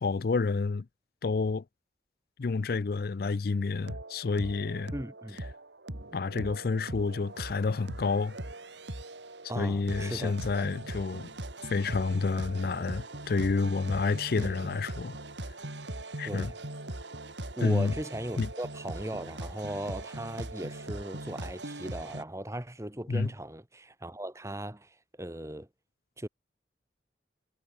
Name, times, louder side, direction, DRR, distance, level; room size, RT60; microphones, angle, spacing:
voice 1, 0.0-0.9 1.2-1.6 2.4-4.9 6.1-8.4 9.6-11.3 11.7-15.2 16.2-16.5 17.6-17.9 18.4-18.5 23.1-23.3, left 4 dB, 55° left, 0.4 m, -29 dB
sound 1, 3.7-22.2, right 1 dB, 85° right, 3.7 m, -41 dB
voice 2, 4.9-5.5 9.5-10.7 14.4-14.6 16.2-16.6 17.6-25.7 26.2-26.3, right 1 dB, 15° right, 1.5 m, -38 dB
head